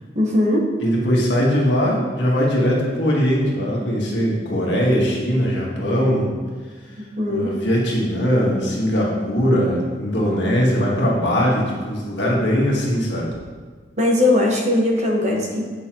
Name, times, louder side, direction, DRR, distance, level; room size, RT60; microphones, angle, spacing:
voice 1, 0.1-0.7 7.2-7.5 14.0-15.6, left 1 dB, 40° right, -1 dB, 1.2 m, -19 dB
voice 2, 0.8-6.3 7.3-13.3, equal, 85° left, -3 dB, 1.8 m, -20 dB
8.8 x 6.0 x 3.0 m, 1.5 s
head